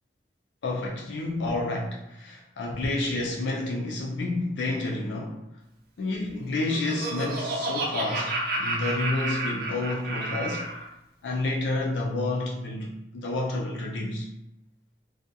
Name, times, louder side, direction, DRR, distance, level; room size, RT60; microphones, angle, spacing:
voice 1, 0.6-5.4 6.0-10.7 11.2-14.3, left 2 dB, 85° left, 0.4 m, -29 dB
Laughter, 6.4-10.8, right 2 dB, 55° right, 0.5 m, -31 dB
2.4 x 2.3 x 2.6 m
head